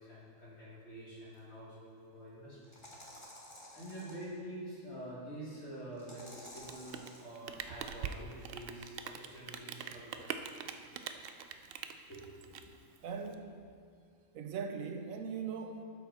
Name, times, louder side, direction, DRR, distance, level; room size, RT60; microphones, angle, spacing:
voice 1, 0.0-2.9 3.7-10.3 12.1-12.6, right 1 dB, 55° left, 2.9 m, -47 dB
sound 1, 1.3-1.4 2.6-4.3 6.0-7.2, left 1 dB, 20° left, 1.5 m, -52 dB
Rain, 6.5-13.3, right 7 dB, 65° right, 0.6 m, -44 dB
voice 2, 13.0-13.6 14.3-15.8, right 6 dB, 85° right, 1.2 m, -40 dB
12.5 x 6.2 x 4.2 m
omnidirectional pair, 1.4 m